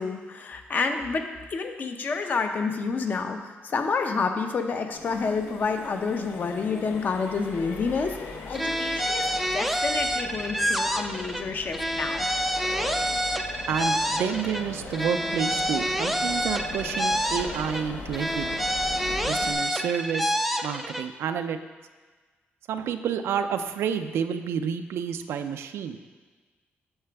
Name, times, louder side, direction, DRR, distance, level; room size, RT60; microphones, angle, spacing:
voice 1, 0.0-8.2 8.5-12.3, left 4 dB, 45° left, 6 dB, 0.6 m, -29 dB
Accelerating revving vroom, 4.9-19.5, left 3 dB, 70° left, 0.9 m, -39 dB
sound 1, 8.5-11.4 11.7-14.6 14.9-17.8 18.1-21.0, equal, ahead, 0.4 m, -28 dB
voice 2, 13.7-18.6 19.2-20.4 20.6-21.6 22.7-26.0, right 7 dB, 90° right, 8 dB, 0.4 m, -29 dB
8.8 x 6.6 x 3.4 m, 1.3 s
cardioid pair, 135°, 4 cm